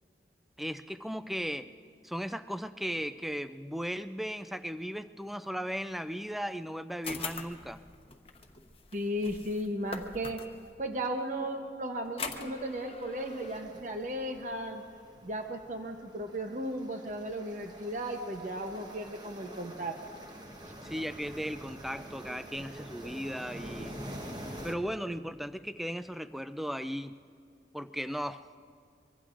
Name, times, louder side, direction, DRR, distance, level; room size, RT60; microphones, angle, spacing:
voice 1, 0.6-1.7 2.0-7.8 20.8-24.0 24.3-27.2 27.7-28.5, equal, ahead, 11 dB, 0.3 m, -36 dB
sound 1, 7.0-10.7 12.1-13.6, left 4 dB, 30° left, 1.0 m, -42 dB
voice 2, 8.9-10.4 10.8-14.8 15.2-20.0, right 1 dB, 45° right, 4 dB, 0.8 m, -35 dB
sound 2, 13.2-24.7, equal, 25° right, 1.1 m, -46 dB
24.5 x 23.5 x 2.5 m, 2.4 s
head